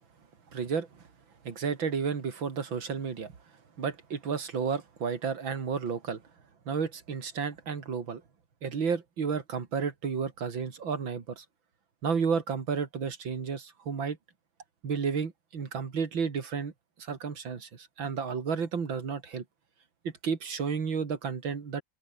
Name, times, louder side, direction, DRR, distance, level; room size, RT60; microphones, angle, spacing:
voice 1, 0.5-0.9 1.4-3.3 3.8-6.2 6.7-8.2 8.6-11.4 12.0-14.2 14.8-16.7 17.0-19.4 20.0-21.8, right 6 dB, 85° right, 3.3 m, -32 dB
open air
omnidirectional pair, 2.1 m